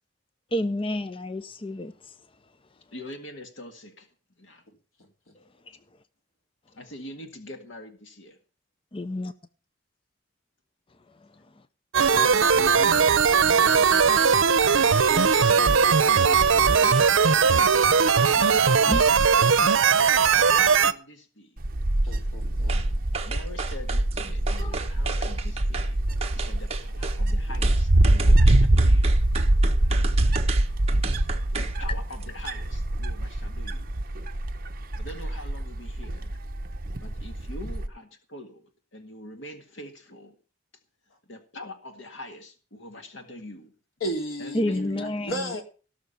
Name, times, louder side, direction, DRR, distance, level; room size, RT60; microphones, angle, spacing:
voice 1, 0.5-2.1 5.7-5.8 8.9-9.3 11.2-11.3 18.3-18.6 18.9-19.1 24.6-24.8 44.5-45.5, left 1 dB, 25° left, 0.6 m, -30 dB
voice 2, 2.9-4.1 4.4-4.6 6.8-8.3 12.0-13.6 14.7-15.9 16.2-17.3 17.6-17.7 18.7-19.4 20.6-21.5 23.2-26.0 26.3-29.2 31.6-33.9 35.0-36.4 37.0-40.4 41.3-43.7 44.4-45.6, left 1 dB, 70° left, 1.9 m, -43 dB
sound 1, 11.9-20.9, right 6 dB, 80° right, 0.8 m, -19 dB
voice 3, 14.7-15.3 22.0-23.0 44.0-45.6, equal, 90° left, 3.7 m, -34 dB
Wind, 21.6-37.9, right 1 dB, 45° right, 1.0 m, -24 dB
sound 2, 22.7-22.9 23.1-25.9 26.2-27.2 27.6-31.8 32.1-32.2, right 5 dB, 30° right, 1.4 m, -34 dB
18.0 x 6.4 x 6.9 m
head